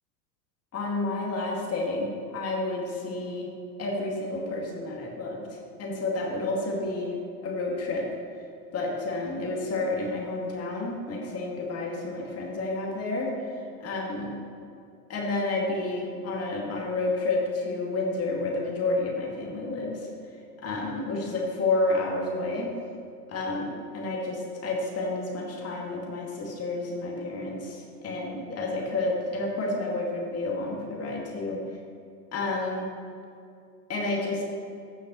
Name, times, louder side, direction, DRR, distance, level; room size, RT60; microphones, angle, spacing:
voice 1, 0.7-3.5 3.8-7.2 7.4-8.0 8.7-13.3 13.8-14.3 15.1-20.1 20.6-22.7 23.3-31.6 32.3-32.9 33.9-34.4, left 2 dB, 30° left, -2 dB, 2.2 m, -30 dB
15.5 x 6.3 x 3.2 m, 2.5 s
hypercardioid pair, 90°, 49 cm